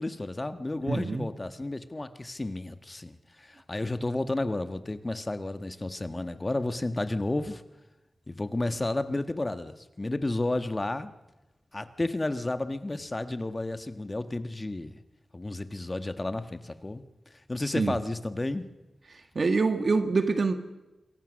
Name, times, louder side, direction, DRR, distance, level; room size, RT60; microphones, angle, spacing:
voice 1, 0.0-7.6 8.3-11.1 11.7-15.0 15.3-17.0 17.5-18.7, left 2 dB, 25° left, 1.5 m, -32 dB
voice 2, 0.9-1.3 17.6-17.9 19.1-20.5, right 4 dB, 50° right, 1.7 m, -26 dB
27.0 x 23.5 x 6.5 m
wide cardioid pair, 110°, 0 cm